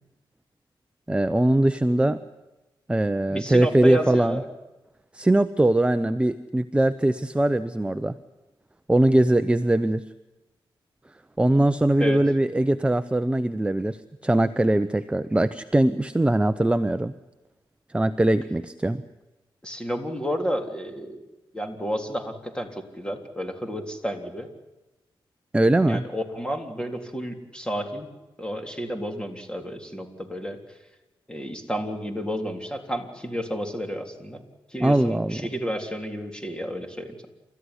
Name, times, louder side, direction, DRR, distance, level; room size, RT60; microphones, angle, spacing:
voice 1, 1.1-2.2 2.9-4.4 5.1-8.1 8.9-10.0 11.4-17.1 17.9-19.0 25.5-26.0 34.8-35.5, right 1 dB, 10° right, 11 dB, 0.7 m, -21 dB
voice 2, 3.3-4.5 12.0-12.2 19.6-21.2 21.5-24.5 25.9-28.1 28.4-30.6 31.3-34.4 34.7-37.1, equal, 10° left, 4 dB, 3.7 m, -31 dB
29.0 x 14.5 x 10.0 m, 1.1 s
cardioid pair, 80°, 9 cm